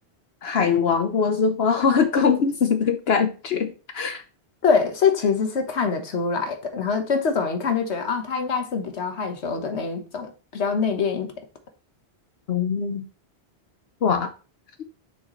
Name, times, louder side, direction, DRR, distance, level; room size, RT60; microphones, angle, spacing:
voice 1, 0.4-4.2 12.5-13.0 14.0-14.3, left 6 dB, 70° left, 1.0 m, -22 dB
voice 2, 4.6-11.3, left 5 dB, 85° left, 1.5 m, -24 dB
7.1 x 6.5 x 3.1 m
omnidirectional pair, 1.1 m